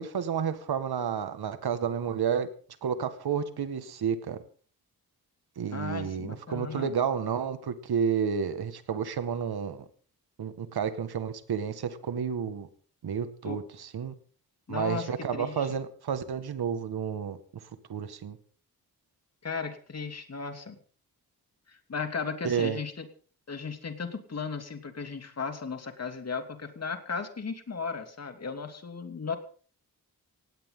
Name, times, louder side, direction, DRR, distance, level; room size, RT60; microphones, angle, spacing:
voice 1, 0.0-2.5 2.8-4.4 5.6-9.9 10.4-12.7 13.0-14.1 14.7-17.4 17.9-18.4 22.4-22.8, right 7 dB, 80° right, 10 dB, 2.0 m, -31 dB
voice 2, 5.7-6.9 13.4-13.6 14.7-15.7 19.4-20.8 21.7-23.1 23.5-29.4, left 5 dB, 40° left, 7 dB, 2.9 m, -36 dB
18.0 x 17.5 x 4.0 m, 0.42 s
wide cardioid pair, 115°, 38 cm